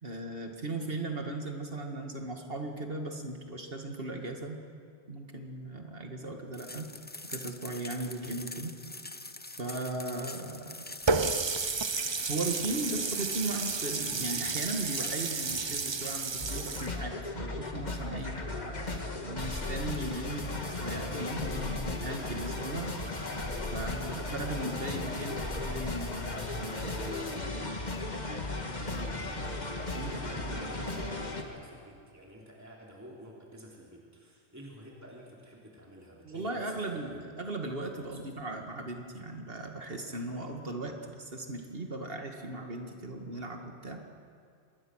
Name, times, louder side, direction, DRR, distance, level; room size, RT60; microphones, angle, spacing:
voice 1, 0.0-4.6 5.1-6.9 7.3-8.7 9.6-10.8 12.3-22.9 23.7-26.3 26.5-27.4 28.6-29.1 29.9-30.6 36.2-44.0, right 2 dB, 60° right, 3 dB, 2.2 m, -37 dB
sound 1, 6.5-16.3, left 2 dB, 15° left, 0.5 m, -45 dB
Water tap faucet, 11.1-16.9, right 4 dB, 30° right, 0.5 m, -32 dB
sound 2, 16.4-31.4, left 2 dB, 40° left, 1.9 m, -36 dB
voice 2, 28.8-29.6 30.0-36.7 37.0-37.2 38.1-38.3, right 1 dB, 15° right, -3 dB, 3.1 m, -50 dB
26.0 x 20.5 x 6.4 m, 2.3 s
omnidirectional pair, 1.1 m